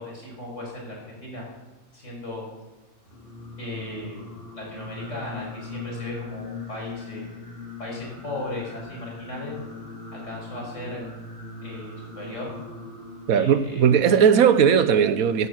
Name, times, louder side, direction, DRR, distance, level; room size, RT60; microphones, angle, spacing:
voice 1, 0.0-1.4 1.9-2.5 3.6-7.2 7.8-9.5 10.1-11.0 11.6-12.5 13.3-13.8, left 1 dB, 60° left, -2 dB, 6.1 m, -36 dB
Singing, 3.0-13.7, left 3 dB, 45° left, 4.2 m, -40 dB
voice 2, 13.3-15.5, right 7 dB, 85° right, 13 dB, 1.3 m, -18 dB
13.0 x 11.0 x 8.1 m, 1.1 s
omnidirectional pair, 1.4 m